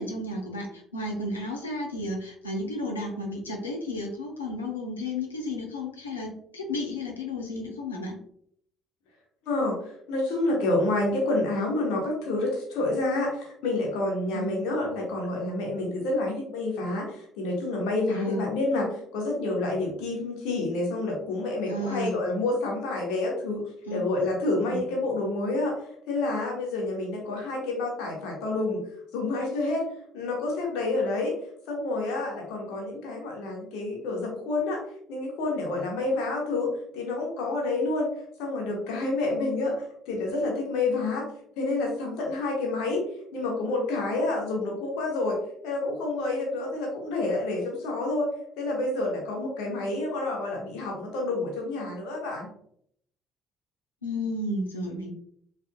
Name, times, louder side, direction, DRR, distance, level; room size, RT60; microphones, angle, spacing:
voice 1, 0.0-8.2 14.3-14.5 18.1-18.5 21.7-22.2 23.9-24.3 24.7-24.8 54.0-55.1, left 1 dB, 85° left, 1 dB, 0.5 m, -33 dB
voice 2, 9.4-23.6 23.9-25.7 26.1-28.8 29.1-29.8 30.1-31.3 31.7-34.8 35.1-38.1 38.4-39.7 40.1-41.2 41.6-43.0 43.3-45.4 45.6-48.3 48.6-52.5, left 2 dB, 65° left, -1 dB, 1.0 m, -28 dB
3.3 x 2.6 x 2.3 m, 0.66 s
figure-of-eight pair, 50°, 0 cm